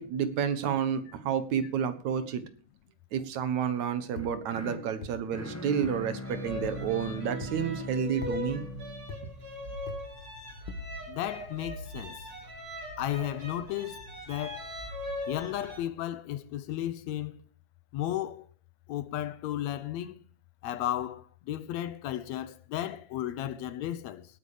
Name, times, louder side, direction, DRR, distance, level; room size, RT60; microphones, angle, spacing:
voice 1, 0.0-2.4 3.1-8.6, right 8 dB, 75° right, 2.7 m, -30 dB
sound 1, 4.1-10.2, left 1 dB, 10° left, 1.1 m, -42 dB
sound 2, 4.2-4.3 5.0-5.1 5.8-6.0 6.6-6.8 7.4-7.6 8.2-8.4 9.1-9.2 9.9-10.0 10.7-10.9, left 4 dB, 55° left, 2.0 m, -40 dB
sound 3, 6.2-15.8, left 1 dB, 30° right, 4.2 m, -40 dB
voice 2, 11.1-12.2 13.0-14.7 15.3-17.4 17.9-18.4 18.9-20.2 20.6-24.3, left 12 dB, 75° left, 1.9 m, -34 dB
18.0 x 9.1 x 4.9 m
omnidirectional pair, 3.3 m